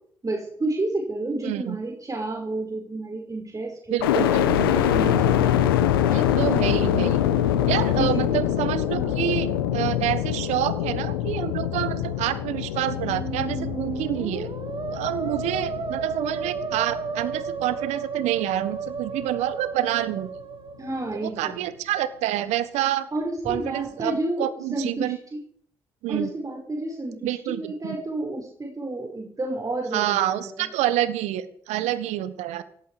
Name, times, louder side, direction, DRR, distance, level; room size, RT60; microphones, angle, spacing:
voice 1, 0.2-4.0 4.5-5.5 8.0-8.3 8.9-9.2 20.8-21.7 23.1-25.4 26.1-30.5, right 2 dB, 30° right, 1 dB, 5.5 m, -30 dB
voice 2, 1.4-1.7 3.9-5.1 6.1-7.2 7.7-14.5 14.9-20.3 21.1-23.1 23.4-25.2 26.0-26.3 27.2-28.0 29.9-32.6, right 13 dB, 75° right, 14 dB, 1.4 m, -28 dB
sound 1, 4.0-18.0 18.5-19.2, left 11 dB, 85° left, 1.2 m, -24 dB
Musical instrument, 12.9-20.9, right 5 dB, 45° right, 2.9 m, -33 dB
17.5 x 16.5 x 5.0 m, 0.63 s
hypercardioid pair, 45°, 12 cm